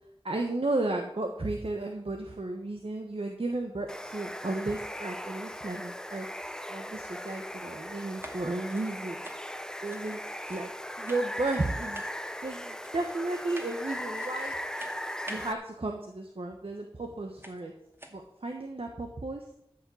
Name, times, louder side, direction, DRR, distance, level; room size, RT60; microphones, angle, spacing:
voice 1, 0.2-6.3 6.7-9.2 9.8-10.2 10.5-10.7 11.0-12.0 12.4-14.6 15.3-17.7 18.1-19.4, right 2 dB, 75° right, 3 dB, 1.3 m, -33 dB
Water, 3.9-15.5, equal, 5° left, 0.7 m, -38 dB
sound 1, 8.1-10.8 11.0-11.6 11.9-12.4 12.8-13.2 13.5-13.9 14.1-14.5 14.8-15.5 16.7-16.8 17.4-17.6 17.9-18.2, equal, 25° right, 2.1 m, -48 dB
13.5 x 5.9 x 7.8 m, 0.76 s
wide cardioid pair, 45°, 10 cm